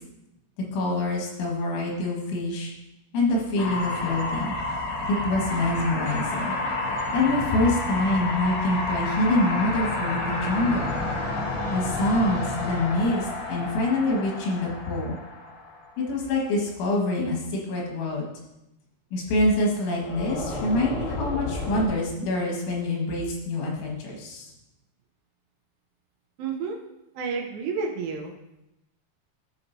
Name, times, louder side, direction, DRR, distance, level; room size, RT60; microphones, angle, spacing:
voice 1, 0.7-2.7 3.1-4.6 5.1-6.5 7.1-10.9 11.7-15.2 16.0-18.3 19.1-24.5, left 2 dB, 85° left, -2 dB, 4.1 m, -25 dB
sound 1, 3.6-15.9 19.9-21.8, left 2 dB, 70° left, 3.2 m, -30 dB
voice 2, 26.4-26.8 27.2-28.3, right 5 dB, 75° right, 1 dB, 2.8 m, -30 dB
13.5 x 5.7 x 2.7 m, 0.91 s
omnidirectional pair, 5.3 m